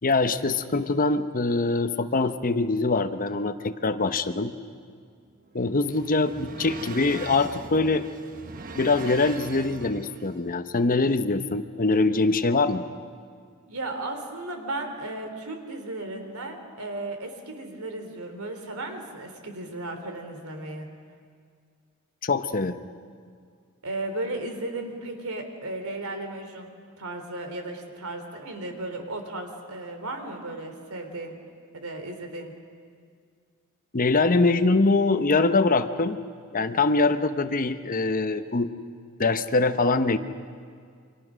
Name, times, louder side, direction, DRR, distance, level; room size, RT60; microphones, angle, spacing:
voice 1, 0.0-4.5 5.5-8.0 8.7-12.8 22.2-22.8 33.9-36.2 36.5-38.7 39.2-40.2, left 3 dB, 40° left, 10 dB, 0.9 m, -23 dB
sound 1, 5.3-10.4, right 3 dB, 40° right, 1.0 m, -41 dB
voice 2, 13.7-20.9 23.8-26.7 27.0-31.4 31.7-32.5, right 2 dB, 80° right, 5 dB, 3.4 m, -35 dB
29.5 x 25.0 x 6.3 m, 2.1 s
head